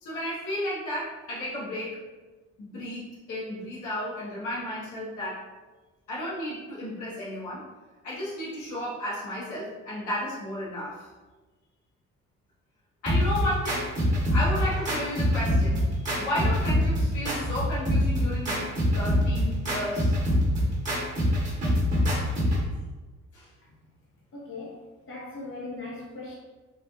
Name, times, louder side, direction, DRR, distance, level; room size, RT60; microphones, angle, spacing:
voice 1, 0.0-2.0 2.6-5.4 6.1-7.6 8.0-11.1 13.0-13.9 14.3-20.2 23.3-23.5, left 1 dB, 80° left, -6 dB, 1.0 m, -33 dB
sound 1, 13.1-22.7, equal, 25° right, 1.3 m, -25 dB
voice 2, 24.3-24.8 25.1-26.3, left 2 dB, 45° left, -5 dB, 1.0 m, -38 dB
3.2 x 2.5 x 2.3 m, 1.2 s
cardioid pair, 90°, 30 cm